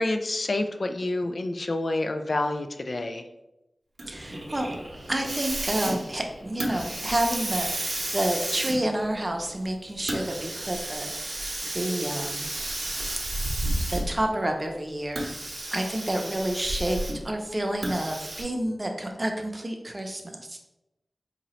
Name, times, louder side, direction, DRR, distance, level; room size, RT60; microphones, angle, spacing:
voice 1, 0.0-3.3, left 2 dB, 65° left, 6 dB, 0.3 m, -28 dB
Hiss, 4.0-14.3 15.0-17.3 17.8-18.4, right 1 dB, 65° right, 0.8 m, -32 dB
voice 2, 4.1-4.7 5.1-11.1 11.7-12.5 13.9-15.3 15.7-17.0 17.2-20.2 20.5-20.6, right 1 dB, 30° right, 3 dB, 0.6 m, -29 dB
3.8 x 2.9 x 3.0 m, 0.93 s
cardioid pair, 45°, 0 cm